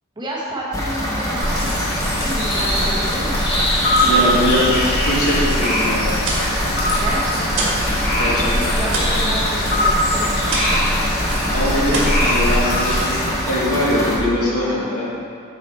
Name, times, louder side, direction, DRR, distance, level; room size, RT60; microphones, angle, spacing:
voice 1, 0.2-3.4 7.0-7.8 8.2-10.3 10.6-11.0, right 1 dB, 20° right, -5 dB, 1.1 m, -30 dB
sound 1, 0.7-14.2, equal, 15° left, 1.0 m, -25 dB
sound 2, 1.3-13.2, equal, 45° left, 1.8 m, -21 dB
voice 2, 4.0-4.7 5.1-6.2 8.2-8.7 11.5-15.1, equal, 70° left, -6 dB, 1.8 m, -22 dB
sound 3, 6.2-7.9 8.2-10.9 11.2-11.5 11.9-13.0, right 2 dB, 55° right, 1.6 m, -27 dB
8.4 x 4.9 x 4.4 m, 2.3 s
head